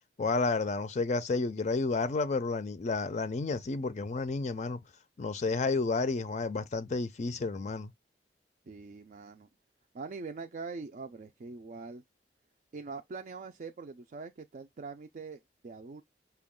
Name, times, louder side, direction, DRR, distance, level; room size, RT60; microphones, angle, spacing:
voice 1, 0.2-4.8 5.2-7.9, left 3 dB, 40° left, 0.4 m, -31 dB
voice 2, 8.7-9.5 9.9-12.0 12.7-16.0, right 4 dB, 45° right, 0.4 m, -43 dB
6.0 x 2.3 x 3.6 m
head